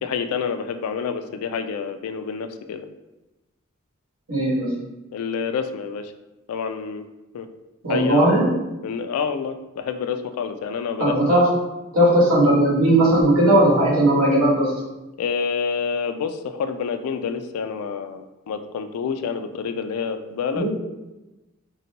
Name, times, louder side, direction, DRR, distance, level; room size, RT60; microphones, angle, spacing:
voice 1, 0.0-2.9 5.1-6.1 6.5-7.0 7.3-7.5 7.9-8.2 8.8-11.4 15.2-20.7, left 6 dB, 80° left, 9 dB, 0.3 m, -28 dB
voice 2, 4.3-4.7 7.8-8.5 11.0-11.5 11.9-14.7 20.5-20.7, right 1 dB, 85° right, -6 dB, 1.5 m, -17 dB
3.9 x 2.2 x 2.8 m, 1.0 s
head